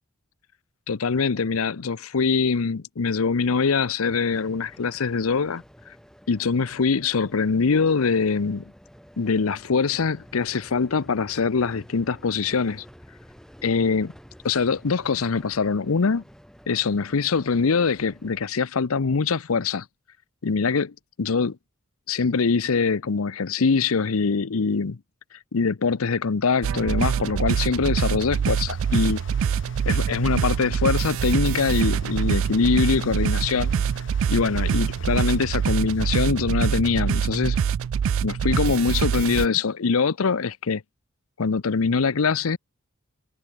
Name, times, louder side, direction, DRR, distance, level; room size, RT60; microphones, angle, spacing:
voice 1, 0.9-5.6 6.3-8.6 9.2-12.8 13.6-14.1 14.4-16.2 16.7-19.9 20.4-21.6 22.1-25.0 25.5-29.2 29.9-33.8 34.3-37.6 38.2-40.8 41.4-42.6, left 5 dB, 90° left, 0.7 m, -23 dB
sound 1, 4.1-18.5, equal, 5° left, 6.5 m, -50 dB
sound 2, 26.6-39.5, right 7 dB, 70° right, 0.3 m, -25 dB
sound 3, 27.9-37.1, left 3 dB, 60° left, 7.9 m, -47 dB
head